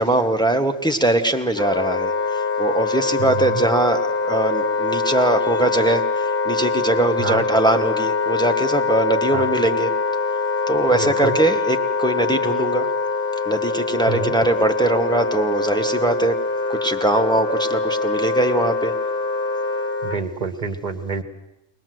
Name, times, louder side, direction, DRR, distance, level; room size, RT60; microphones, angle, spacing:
voice 1, 0.0-9.9 10.7-12.9 13.5-16.4 16.7-18.9, right 2 dB, 5° left, 4 dB, 1.1 m, -21 dB
Wind instrument woodwind instrument, 1.5-20.2, left 4 dB, 55° left, 1.2 m, -24 dB
voice 2, 3.2-3.6 7.2-7.4 9.3-9.5 10.9-11.4 14.1-14.3 20.0-21.2, right 5 dB, 35° right, 8 dB, 1.4 m, -27 dB
23.0 x 19.5 x 7.7 m, 0.93 s
omnidirectional pair, 1.2 m